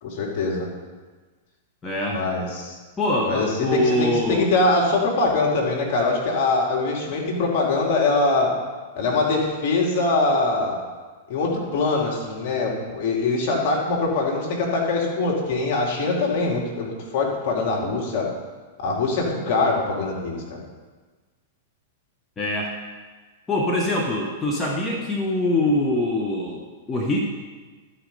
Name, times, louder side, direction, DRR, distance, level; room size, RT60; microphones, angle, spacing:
voice 1, 0.0-0.7 2.1-2.8 3.3-8.5 9.0-10.8 11.3-18.3 18.8-20.6, left 3 dB, 55° left, -1 dB, 2.4 m, -23 dB
voice 2, 1.8-2.2 3.0-4.5 22.4-22.7 23.5-27.2, left 1 dB, 20° left, -1 dB, 1.2 m, -23 dB
12.0 x 5.0 x 5.4 m, 1.3 s
hypercardioid pair, 105°, 0 cm